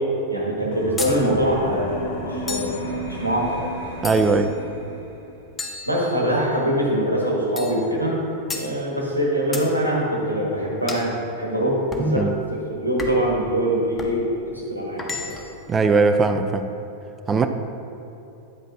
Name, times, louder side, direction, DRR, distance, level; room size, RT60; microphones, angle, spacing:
voice 1, 0.3-3.6 5.8-8.2 8.5-12.2 12.5-15.3, right 1 dB, 85° right, 1.4 m, -23 dB
sound 1, 0.7-5.4, left 1 dB, 55° left, 1.2 m, -33 dB
sound 2, 1.0-1.2 2.5-2.8 4.0-4.5 5.6-6.5 7.6-7.8 8.5-8.7 9.5-9.7 10.9-11.1 11.9-12.1 13.0-13.3 14.0-14.2 15.0-15.6, left 3 dB, 15° left, 0.7 m, -33 dB
voice 2, 4.0-4.6 12.0-12.3 15.7-16.7 17.3-17.5, right 4 dB, 20° right, 0.4 m, -19 dB
9.3 x 7.5 x 2.5 m
figure-of-eight pair, 90°, 0 cm